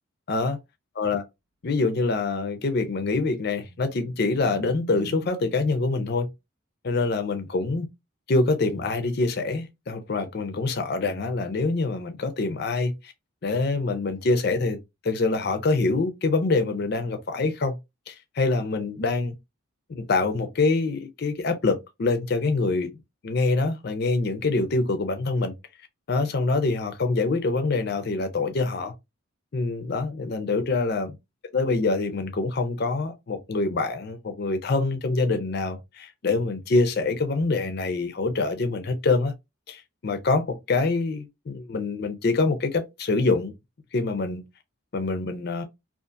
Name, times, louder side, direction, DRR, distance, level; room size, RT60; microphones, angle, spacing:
voice 1, 1.6-6.3 6.8-7.9 8.3-13.1 13.4-14.8 15.0-17.8 18.1-19.3 19.9-22.9 23.2-25.5 26.1-28.9 29.5-31.2 31.5-39.3 39.7-43.5 43.9-44.4 44.9-45.6, left 3 dB, 45° left, 0.5 m, -25 dB
sound 1, 3.5-6.0, right 8 dB, 80° right, 0.4 m, -46 dB
2.4 x 2.4 x 2.5 m
head